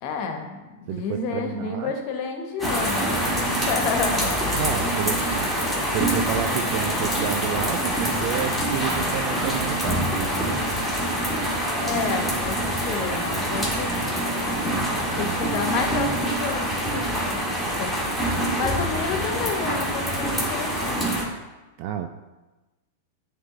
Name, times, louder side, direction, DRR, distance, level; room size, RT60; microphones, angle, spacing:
voice 1, 0.0-4.3 11.8-17.9 18.5-21.1, left 5 dB, 50° left, 5 dB, 1.0 m, -30 dB
voice 2, 0.9-1.9 4.1-5.5 5.9-10.6 15.0-15.6 21.8-22.1, right 10 dB, 50° right, 6 dB, 0.4 m, -30 dB
sound 1, 2.6-21.2, equal, ahead, 1.7 m, -25 dB
9.4 x 3.4 x 3.7 m, 1.1 s
figure-of-eight pair, 95°, 0 cm